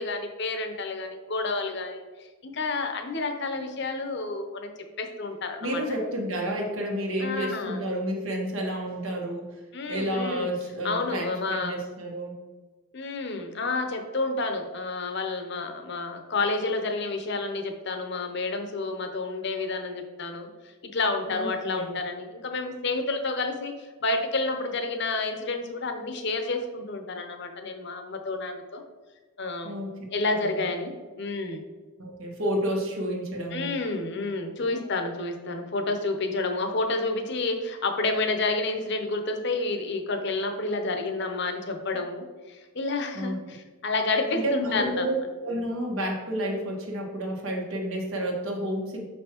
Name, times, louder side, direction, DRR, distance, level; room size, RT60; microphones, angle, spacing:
voice 1, 0.0-4.7 5.0-5.8 7.2-7.8 9.7-10.5 10.8-11.8 12.9-20.5 20.9-28.8 29.4-29.7 30.1-31.6 33.5-45.2, left 3 dB, 55° left, 5 dB, 0.7 m, -30 dB
voice 2, 5.6-9.6 9.9-12.3 21.3-21.9 29.6-29.9 30.4-30.6 32.0-33.8 34.6-34.9 43.1-43.4 44.3-45.1 45.4-49.0, right 1 dB, 75° right, 0 dB, 1.3 m, -30 dB
6.1 x 5.4 x 2.9 m, 1.3 s
head